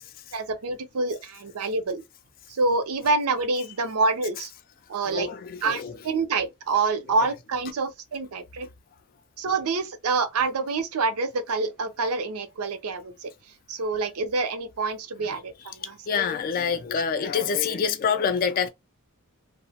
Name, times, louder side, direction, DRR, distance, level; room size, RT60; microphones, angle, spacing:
voice 1, 0.3-2.0 2.5-4.5 4.9-5.3 5.6-8.7 9.4-13.3 13.7-15.8, right 3 dB, 85° right, 0.6 m, -27 dB
voice 2, 4.9-6.1 7.2-7.3 15.2-18.7, left 6 dB, 40° left, 0.3 m, -27 dB
2.8 x 2.0 x 2.7 m
head